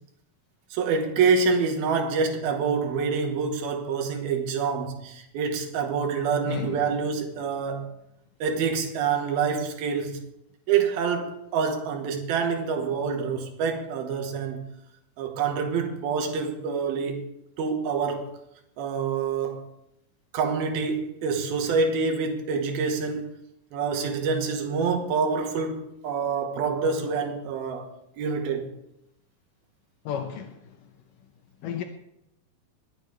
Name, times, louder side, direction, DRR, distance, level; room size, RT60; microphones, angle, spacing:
voice 1, 0.7-7.9 8.4-10.2 10.7-14.7 15.2-17.2 17.6-18.3 18.8-19.7 20.3-23.4 23.7-27.9 28.2-28.7, right 5 dB, 85° right, 3.3 m, -26 dB
voice 2, 6.5-6.9 30.1-30.6 31.6-31.8, left 8 dB, 75° left, 2.3 m, -32 dB
21.0 x 8.7 x 3.4 m
omnidirectional pair, 4.2 m